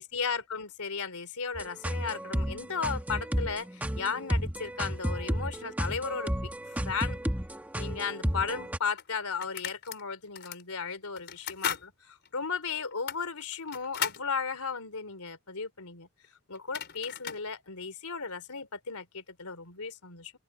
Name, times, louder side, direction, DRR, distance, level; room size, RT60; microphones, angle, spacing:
voice 1, 0.0-6.5 6.8-7.2 7.8-16.1 16.5-20.3, left 5 dB, 90° left, 3.5 m, -35 dB
sound 1, 1.5-8.8, equal, 5° right, 1.4 m, -32 dB
sound 2, 8.2-8.3 9.0-10.0 10.3-10.6 11.2-11.9 12.2-12.3 12.9-14.3 16.2-16.3 16.5-17.4, left 8 dB, 50° left, 4.6 m, -36 dB
open air
head